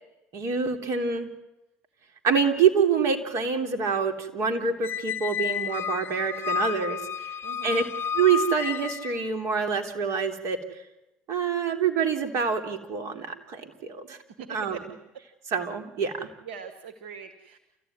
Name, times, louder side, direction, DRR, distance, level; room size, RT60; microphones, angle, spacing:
voice 1, 0.3-1.3 2.2-7.3 7.6-7.8 8.1-10.6 11.3-14.2 14.5-14.8 15.5-16.3, right 6 dB, 60° right, 5 dB, 3.4 m, -26 dB
Squeak, 4.8-9.3, left 8 dB, 40° left, 1.0 m, -31 dB
voice 2, 7.4-7.9 14.4-14.8 16.4-17.6, right 6 dB, 90° right, 7 dB, 1.4 m, -42 dB
29.0 x 14.5 x 9.7 m, 0.98 s
hypercardioid pair, 70°, 6 cm